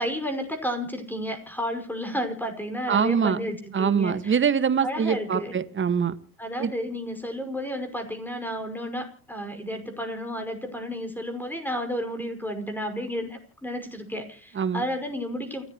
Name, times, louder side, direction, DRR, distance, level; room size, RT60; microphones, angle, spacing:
voice 1, 0.0-4.4 4.8-5.6 6.4-15.6, equal, 5° left, 6 dB, 5.6 m, -32 dB
voice 2, 2.9-3.4 3.7-6.2 6.6-6.7 14.6-14.8, right 7 dB, 25° right, 14 dB, 1.8 m, -23 dB
29.0 x 14.0 x 3.1 m, 0.43 s
hypercardioid pair, 80°, 44 cm